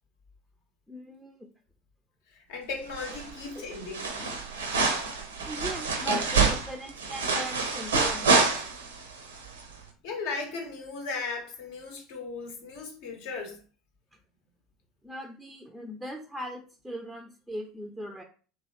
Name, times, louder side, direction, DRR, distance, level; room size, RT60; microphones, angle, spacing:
voice 1, 0.9-1.3 3.6-3.7 5.5-8.5 15.0-18.2, right 1 dB, ahead, 0.5 m, -38 dB
voice 2, 2.3-4.1 10.0-13.6, left 4 dB, 60° left, 0.8 m, -37 dB
sound 1, 2.9-3.5 3.7-9.0 9.4-9.5, right 4 dB, 75° right, 0.5 m, -27 dB
3.0 x 3.0 x 2.8 m
figure-of-eight pair, 70°, 0 cm